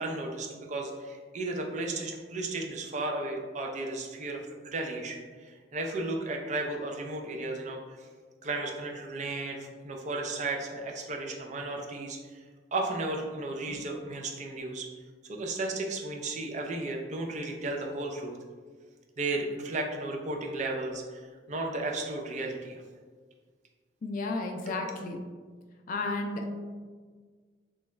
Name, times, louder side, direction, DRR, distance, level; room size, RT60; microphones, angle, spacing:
voice 1, 0.0-8.0 8.4-12.4 12.7-14.9 15.2-18.4 19.2-22.8 24.7-24.9, right 2 dB, 40° right, 2 dB, 0.4 m, -34 dB
voice 2, 24.0-25.2 25.9-26.5, left 2 dB, 50° left, 3 dB, 0.4 m, -33 dB
3.1 x 2.3 x 3.1 m, 1.5 s
head